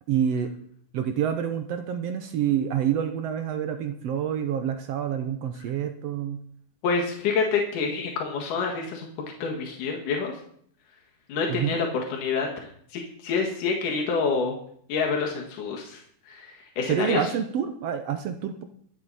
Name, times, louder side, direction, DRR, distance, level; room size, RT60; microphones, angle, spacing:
voice 1, 0.1-0.5 0.9-6.4 11.5-11.8 16.9-18.6, right 9 dB, 75° right, 7 dB, 1.5 m, -27 dB
voice 2, 6.8-9.1 9.4-10.4 11.3-14.5 14.9-17.2, left 5 dB, 75° left, 1 dB, 3.3 m, -27 dB
23.5 x 7.9 x 4.2 m, 0.63 s
omnidirectional pair, 3.8 m